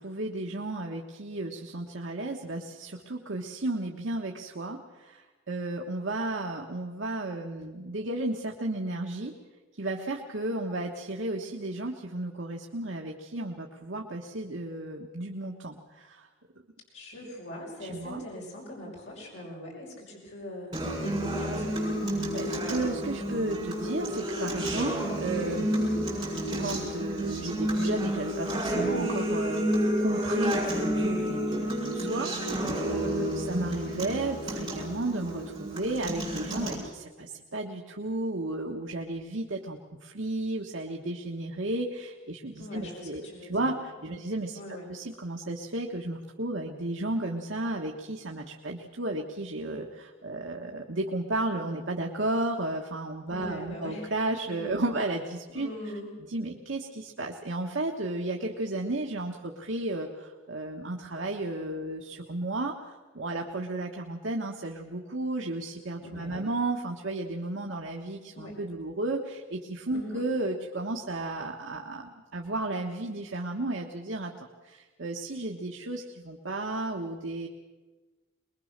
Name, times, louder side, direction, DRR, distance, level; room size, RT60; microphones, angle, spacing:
voice 1, 0.0-9.3 9.8-16.3 17.8-18.2 22.1-26.3 26.6-43.2 43.5-44.6 44.9-55.7 56.3-74.3 74.6-77.5, right 2 dB, 65° right, 1 dB, 1.4 m, -33 dB
voice 2, 16.9-21.9 33.0-33.4 42.6-43.7 44.1-44.3 44.5-44.9 53.3-54.1 54.4-54.8 55.5-56.1 66.0-66.5 68.3-68.6 69.9-70.2, equal, 60° left, -3 dB, 5.7 m, -41 dB
Acoustic guitar, 20.7-36.7, right 1 dB, 20° right, 7.9 m, -30 dB
24.0 x 21.5 x 6.7 m, 1.3 s
head